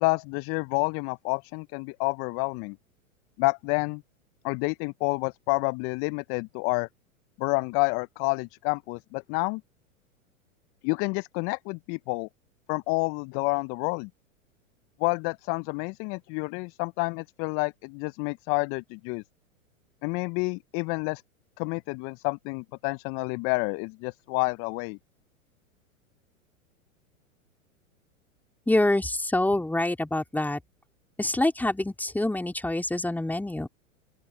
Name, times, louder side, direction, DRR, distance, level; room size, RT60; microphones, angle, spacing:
voice 1, 0.0-2.8 3.4-4.0 4.4-6.9 7.4-9.6 10.8-12.3 12.7-14.1 15.0-19.2 20.0-21.2 21.6-25.0, left 31 dB, 35° left, 0.6 m, -29 dB
voice 2, 28.7-30.6 31.2-33.7, left 1 dB, 5° left, 3.7 m, -26 dB
open air
hypercardioid pair, 100°, 41 cm